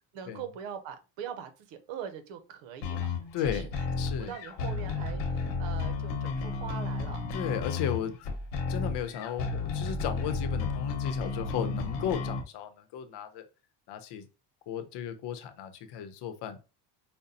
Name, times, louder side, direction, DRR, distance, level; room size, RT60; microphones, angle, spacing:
voice 1, 0.1-3.2 3.4-3.7 4.1-7.2, right 8 dB, 85° right, 0.8 m, -42 dB
sound 1, 2.8-12.4, left 4 dB, 90° left, 1.1 m, -33 dB
voice 2, 3.3-3.7 4.0-4.3 7.3-8.2 8.7-13.5 13.9-14.3 14.7-16.6, left 8 dB, 65° left, 0.8 m, -35 dB
5.2 x 2.2 x 2.7 m
cardioid pair, 110°, 44 cm